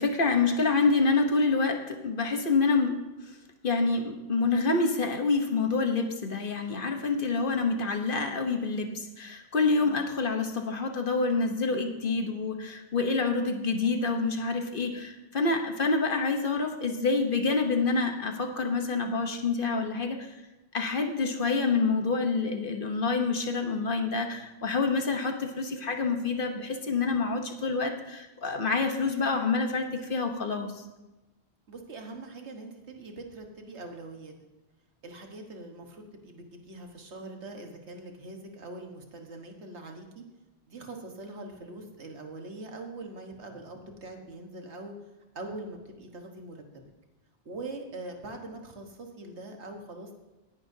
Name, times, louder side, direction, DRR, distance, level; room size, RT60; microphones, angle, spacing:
voice 1, 0.0-3.4 3.6-20.4 20.7-30.8, left 4 dB, 50° left, 5 dB, 1.2 m, -27 dB
voice 2, 9.7-10.0 31.7-34.3 35.0-40.2 40.7-44.9 45.3-46.6 47.4-50.1, right 2 dB, 75° right, 3 dB, 1.7 m, -42 dB
18.5 x 10.5 x 2.8 m, 1.1 s
omnidirectional pair, 1.1 m